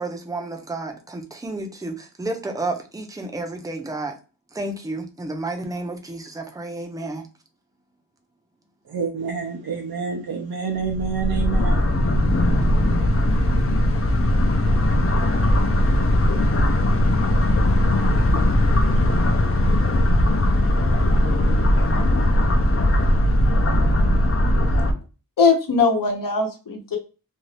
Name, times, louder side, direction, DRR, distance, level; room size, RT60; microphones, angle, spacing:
voice 1, 0.0-4.2 4.5-7.3, right 2 dB, 10° right, 0.5 m, -31 dB
voice 2, 8.9-11.9, right 6 dB, 75° right, 0.6 m, -28 dB
sound 1, 10.9-24.9, left 1 dB, 40° left, 0.5 m, -19 dB
voice 3, 25.4-27.0, left 4 dB, 65° left, 0.9 m, -20 dB
2.7 x 2.3 x 3.2 m
wide cardioid pair, 115°, 36 cm